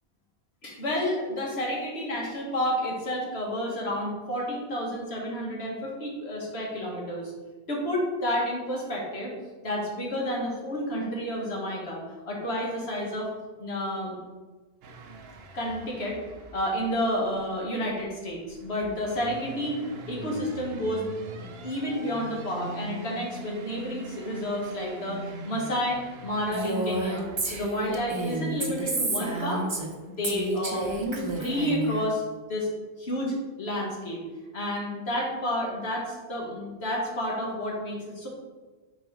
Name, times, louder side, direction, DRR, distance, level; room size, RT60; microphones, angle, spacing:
voice 1, 0.6-7.3 7.7-9.3 9.6-13.3 13.6-14.2 15.5-16.2 16.5-19.8 20.1-21.1 21.4-29.7 30.0-32.2 32.5-32.7 33.0-34.2 34.5-38.3, equal, 85° left, -2 dB, 1.7 m, -30 dB
sound 1, 14.8-31.8, right 2 dB, 75° right, 0.9 m, -44 dB
Female speech woman speaking, 26.5-29.9 30.2-32.0, right 2 dB, 30° right, 0.7 m, -30 dB
5.3 x 4.2 x 4.7 m, 1.3 s
omnidirectional pair, 1.0 m